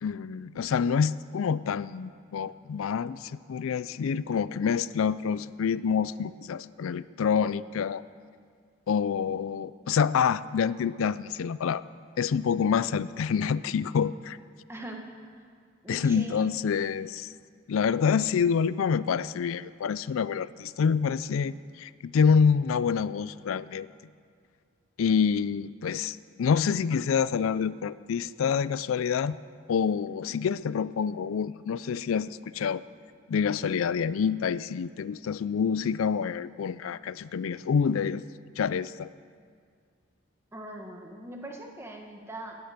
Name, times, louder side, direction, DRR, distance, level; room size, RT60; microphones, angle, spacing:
voice 1, 0.0-8.0 8.9-11.8 12.2-14.4 15.9-17.3 17.7-23.9 25.0-29.4 29.7-32.8 33.3-38.2 38.6-39.1, left 6 dB, 85° left, 17 dB, 0.4 m, -27 dB
voice 2, 14.7-15.4 15.8-16.5 30.3-30.4 40.5-42.6, right 1 dB, 10° right, 2 dB, 1.3 m, -41 dB
17.0 x 9.9 x 6.7 m, 2.1 s
head